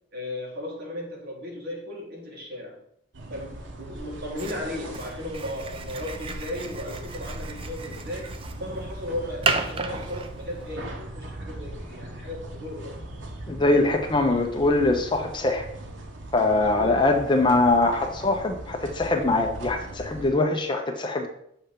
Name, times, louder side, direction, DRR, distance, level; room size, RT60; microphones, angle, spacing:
voice 1, 0.1-2.8 3.3-13.0 16.5-17.0, left 1 dB, 60° right, -3 dB, 1.9 m, -35 dB
sound 1, 3.1-20.3, right 1 dB, 85° right, 0.9 m, -39 dB
sound 2, 4.4-10.7, right 4 dB, 30° right, 0.4 m, -34 dB
voice 2, 13.5-15.6 16.3-21.3, left 2 dB, 25° left, 4 dB, 0.6 m, -22 dB
6.6 x 3.0 x 5.1 m, 0.71 s
head